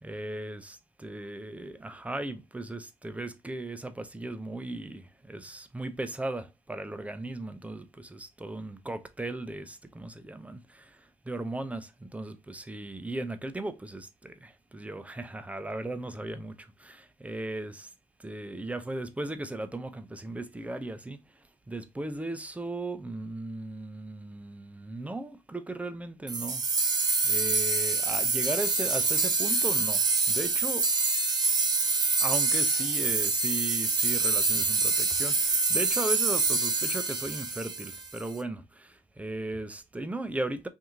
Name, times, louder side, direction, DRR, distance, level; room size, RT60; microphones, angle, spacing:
voice 1, 0.0-17.9 18.2-30.9 32.2-40.7, right 2 dB, 10° right, 0.6 m, -37 dB
sound 1, 26.3-38.3, right 4 dB, 35° right, 0.9 m, -26 dB
2.8 x 2.7 x 3.5 m
supercardioid pair, 55°, 11 cm